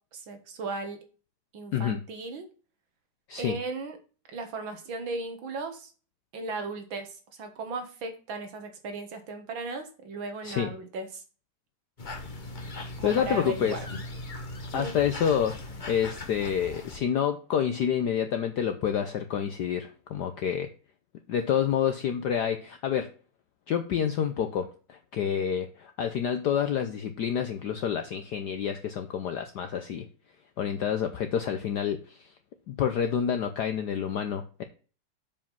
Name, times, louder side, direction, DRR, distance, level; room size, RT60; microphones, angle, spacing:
voice 1, 0.1-1.0 1.5-2.4 3.4-4.0 4.3-5.9 6.3-7.1 7.4-11.2 12.1-12.2 13.0-13.8 14.7-15.0, right 3 dB, 60° right, 6 dB, 2.0 m, -36 dB
sound 1, 12.0-17.0, left 2 dB, 30° left, 0.9 m, -39 dB
voice 2, 13.0-13.8 14.7-20.7 21.3-23.1 23.7-30.1 30.6-32.3 32.7-34.6, left 8 dB, 65° left, 7 dB, 1.0 m, -28 dB
7.2 x 5.1 x 5.4 m, 0.37 s
omnidirectional pair, 2.4 m